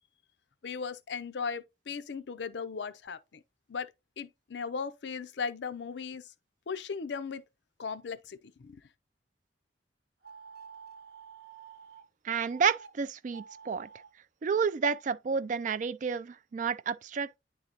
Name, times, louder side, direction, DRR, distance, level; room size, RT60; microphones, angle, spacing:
voice 1, 0.6-3.4 3.7-3.9 4.2-6.3 6.7-7.4 7.8-8.8, left 5 dB, 70° left, 0.5 m, -37 dB
sound 1, 10.2-12.0 12.5-12.9 13.2-14.1, right 6 dB, 60° right, 1.0 m, -50 dB
voice 2, 12.2-13.9 14.4-17.4, right 6 dB, 45° right, 0.3 m, -30 dB
9.6 x 3.9 x 2.9 m
head